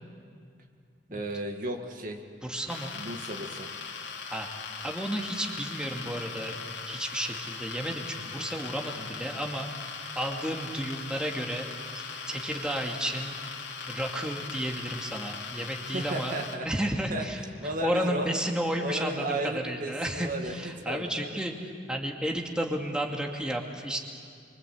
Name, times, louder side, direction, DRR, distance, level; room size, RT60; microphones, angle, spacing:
voice 1, 1.1-2.2 2.9-3.7 15.9-16.7 17.1-17.2 17.6-18.4 18.8-21.4, right 1 dB, 50° right, 3 dB, 2.1 m, -34 dB
voice 2, 2.4-3.0 4.3-4.5 4.8-9.7 10.1-13.4 13.9-16.3 16.6-19.4 19.6-21.5 21.9-24.0, right 1 dB, 5° right, 0 dB, 2.4 m, -32 dB
sound 1, 2.7-16.6, left 5 dB, 85° left, 2.9 m, -40 dB
28.5 x 24.5 x 8.5 m, 2.3 s
head